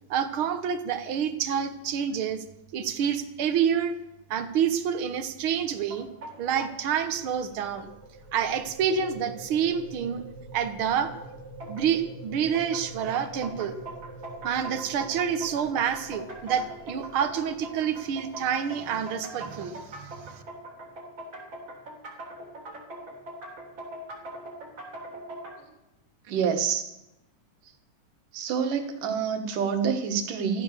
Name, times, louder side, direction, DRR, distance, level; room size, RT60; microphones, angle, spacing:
voice 1, 0.1-2.4 2.7-4.0 4.3-6.1 6.4-7.9 8.3-10.2 10.5-11.1 11.7-13.7 14.4-20.4, right 8 dB, 60° right, 10 dB, 1.5 m, -28 dB
sound 1, 5.9-6.8 8.0-8.1 8.5-8.7 9.3-9.4 11.6-12.1 12.5-25.6, right 1 dB, 35° right, 4.1 m, -42 dB
sound 2, 6.7-18.7, right 2 dB, 20° left, 2.3 m, -46 dB
voice 2, 26.3-26.9 28.3-30.6, right 7 dB, 75° right, 6 dB, 3.3 m, -27 dB
15.0 x 13.0 x 6.8 m, 0.89 s
omnidirectional pair, 3.8 m